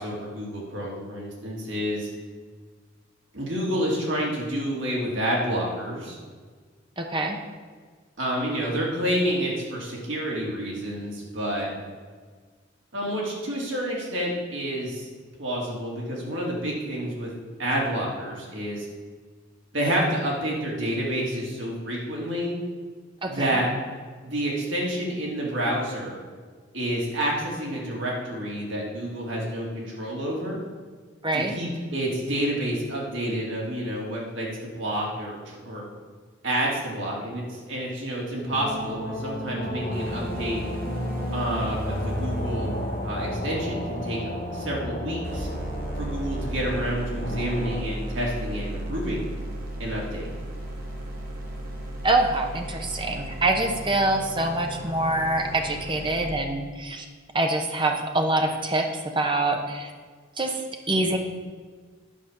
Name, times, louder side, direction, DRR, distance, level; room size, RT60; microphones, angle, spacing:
voice 1, 0.0-2.1 3.3-6.2 8.2-11.7 12.9-15.1 15.4-17.3 17.6-18.9 19.7-22.6 23.2-23.7 24.2-26.2 26.7-30.6 31.3-35.8 36.4-40.6 41.3-42.8 43.0-45.5 46.0-49.3 49.8-50.3, right 1 dB, 75° right, -3 dB, 2.8 m, -29 dB
voice 2, 7.0-7.4 23.2-23.6 31.2-31.5 52.0-57.0 57.3-59.9 60.4-61.2, right 2 dB, 25° right, 4 dB, 1.0 m, -25 dB
sound 1, 38.5-47.8, equal, 55° left, 1.7 m, -32 dB
sound 2, 39.9-44.9 45.2-56.3, equal, 50° right, 1.4 m, -35 dB
10.0 x 5.5 x 6.7 m, 1.5 s
head